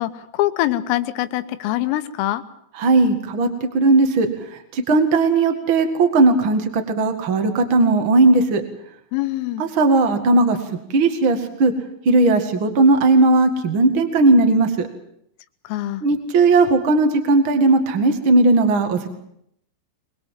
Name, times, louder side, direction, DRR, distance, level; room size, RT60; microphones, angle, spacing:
voice 1, 0.0-2.4 9.1-9.6 15.7-16.0, left 15 dB, 85° left, 11 dB, 3.7 m, -24 dB
voice 2, 2.7-8.6 9.6-10.6 10.9-11.7 12.0-14.9 16.0-19.1, right 3 dB, 75° right, 6 dB, 1.1 m, -17 dB
24.0 x 21.5 x 7.5 m, 0.73 s
omnidirectional pair, 5.8 m